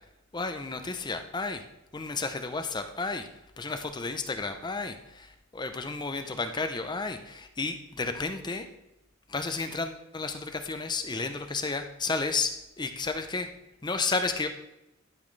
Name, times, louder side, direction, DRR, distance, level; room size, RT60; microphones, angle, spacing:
voice 1, 0.3-1.6 1.9-3.3 3.6-8.7 9.3-13.5 13.8-14.5, left 3 dB, 20° left, 7 dB, 0.6 m, -32 dB
12.0 x 6.2 x 3.2 m, 0.90 s
head